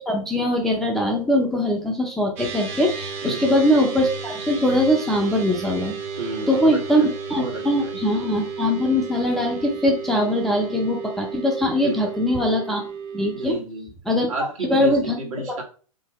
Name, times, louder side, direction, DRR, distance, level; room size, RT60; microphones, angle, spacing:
voice 1, 0.0-6.0 6.5-7.0 7.3-12.8 13.1-13.5 14.1-14.3 14.6-15.2 15.5-15.6, left 1 dB, ahead, 0 dB, 0.3 m, -21 dB
sound 1, 2.4-13.5, right 5 dB, 30° right, 0.7 m, -33 dB
voice 2, 3.2-3.6 6.2-7.1 7.4-7.9 11.8-12.1 13.3-13.9 14.3-15.6, right 3 dB, 65° right, 0 dB, 1.4 m, -31 dB
3.7 x 2.8 x 2.9 m, 0.39 s
figure-of-eight pair, 115°, 19 cm